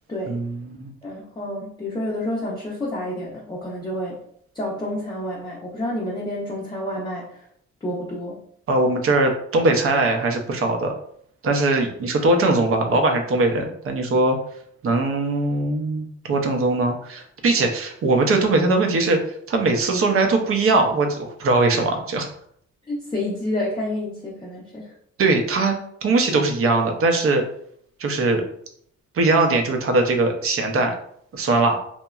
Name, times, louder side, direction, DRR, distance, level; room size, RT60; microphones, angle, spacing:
voice 1, 0.3-0.9 8.7-10.9 11.4-14.4 14.8-19.2 19.5-22.3 25.2-27.4 28.0-28.4 29.1-30.9 31.3-31.8, right 2 dB, 45° right, 4 dB, 0.6 m, -20 dB
voice 2, 1.0-4.2 4.5-7.4 7.8-8.4 22.9-24.9, left 1 dB, 15° left, -5 dB, 0.5 m, -29 dB
2.9 x 2.1 x 2.3 m, 0.67 s
cardioid pair, 90°, 30 cm